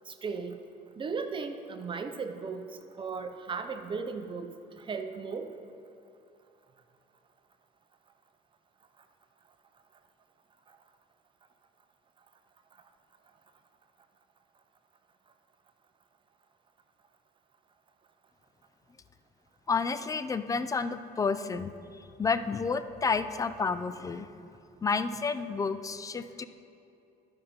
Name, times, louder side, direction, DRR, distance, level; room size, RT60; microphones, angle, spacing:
voice 1, 0.1-0.6 1.0-2.7 3.0-4.5 4.8-5.5, right 5 dB, 30° right, 7 dB, 0.6 m, -36 dB
voice 2, 19.7-21.7 22.2-24.3 24.8-26.4, left 4 dB, 20° left, 12 dB, 0.3 m, -30 dB
11.5 x 5.2 x 4.3 m, 2.8 s
cardioid pair, 110°, 17 cm